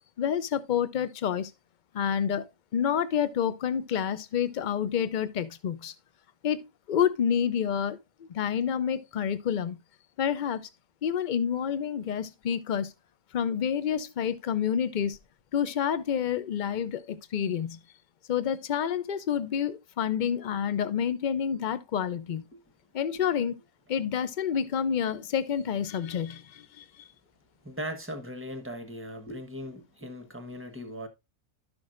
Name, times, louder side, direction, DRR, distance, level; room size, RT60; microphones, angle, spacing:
voice 1, 0.2-1.5 1.9-2.5 2.7-5.9 6.4-9.8 10.2-10.7 11.0-12.9 13.3-15.2 15.5-17.8 18.3-22.4 22.9-23.6 23.9-27.1, left 8 dB, 55° left, 0.5 m, -28 dB
voice 2, 27.6-31.1, equal, 10° right, 1.1 m, -38 dB
12.5 x 6.1 x 2.5 m
omnidirectional pair, 1.5 m